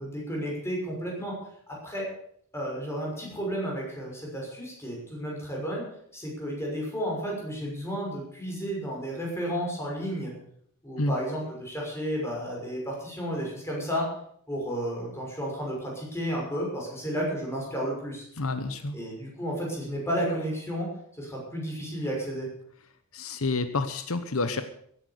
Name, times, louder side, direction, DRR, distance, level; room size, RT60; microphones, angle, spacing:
voice 1, 0.0-1.3 1.8-2.0 2.5-5.9 6.1-10.3 10.8-14.1 14.5-18.2 18.9-20.9 21.2-22.5, equal, 10° left, -2 dB, 6.2 m, -32 dB
voice 2, 18.4-19.0 23.1-24.6, left 3 dB, 80° left, 10 dB, 1.0 m, -29 dB
16.0 x 10.5 x 6.8 m, 0.66 s
head